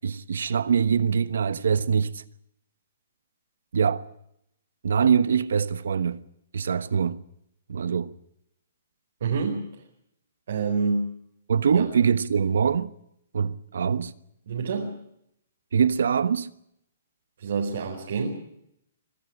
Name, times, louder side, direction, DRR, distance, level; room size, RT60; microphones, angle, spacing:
voice 1, 0.0-2.2 3.7-4.0 4.8-6.2 6.5-7.2 7.7-8.1 11.5-12.9 13.3-14.1 15.7-16.5, right 6 dB, 80° right, 1.2 m, -23 dB
voice 2, 9.2-9.6 10.5-11.1 11.7-11.9 14.5-14.9 17.4-18.3, right 4 dB, 65° right, 4.8 m, -27 dB
24.5 x 13.5 x 10.0 m
hypercardioid pair, 160°, 0 cm